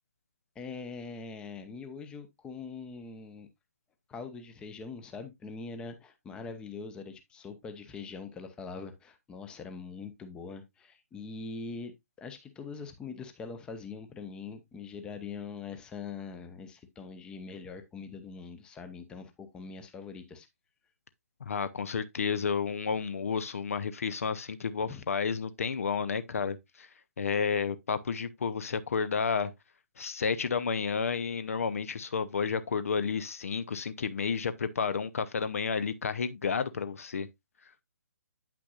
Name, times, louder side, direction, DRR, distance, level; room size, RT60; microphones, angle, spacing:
voice 1, 0.6-3.5 4.1-11.9 12.2-20.5 24.8-25.0, left 4 dB, 10° left, 0.7 m, -43 dB
voice 2, 21.5-26.9 27.2-29.5 30.0-37.3, left 5 dB, 60° left, 0.6 m, -31 dB
8.6 x 5.9 x 2.3 m
figure-of-eight pair, 140°, 9 cm